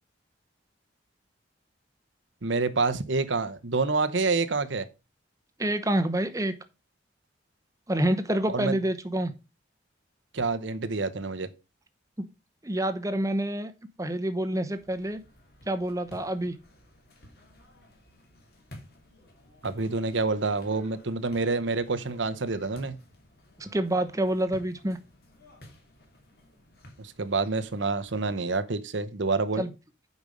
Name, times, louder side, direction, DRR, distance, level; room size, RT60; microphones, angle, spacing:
voice 1, 2.4-4.9 8.5-8.8 10.3-11.5 19.6-23.0 27.0-29.6, right 3 dB, 75° right, 0.9 m, -27 dB
voice 2, 5.6-6.5 7.9-9.3 12.2-12.3 12.6-13.7 14.0-15.2 15.7-16.5 23.6-25.0 29.6-29.7, right 1 dB, 15° right, 0.9 m, -27 dB
sound 1, 14.7-28.3, left 1 dB, 50° left, 2.8 m, -52 dB
8.3 x 5.3 x 5.2 m
head